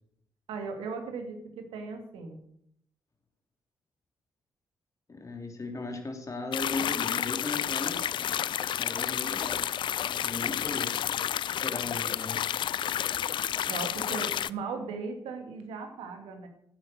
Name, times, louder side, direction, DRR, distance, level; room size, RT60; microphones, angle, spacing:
voice 1, 0.5-2.4 13.7-16.5, right 4 dB, 80° right, 5 dB, 2.5 m, -37 dB
voice 2, 5.1-8.0 8.8-9.8 10.1-10.9 11.4-12.4, left 3 dB, 35° left, 3 dB, 3.4 m, -37 dB
sound 1, 6.5-14.5, left 10 dB, 60° left, 0.4 m, -30 dB
11.0 x 9.1 x 6.6 m, 0.72 s
hypercardioid pair, 45°, 9 cm